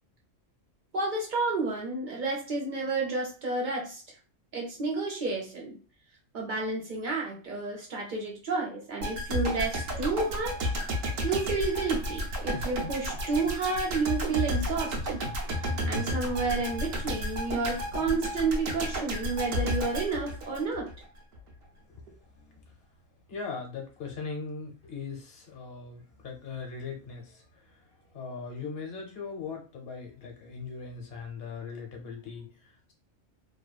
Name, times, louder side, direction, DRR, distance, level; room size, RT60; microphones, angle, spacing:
voice 1, 0.9-4.0 4.5-5.8 6.3-10.7 11.2-15.2 15.9-20.9, right 3 dB, 50° right, -2 dB, 0.7 m, -30 dB
sound 1, 9.0-21.0 21.3-21.5, equal, 80° right, 1.1 m, -32 dB
voice 2, 21.8-22.8 23.3-32.9, left 5 dB, 55° left, 2 dB, 0.9 m, -40 dB
2.7 x 2.2 x 2.3 m, 0.36 s
omnidirectional pair, 1.3 m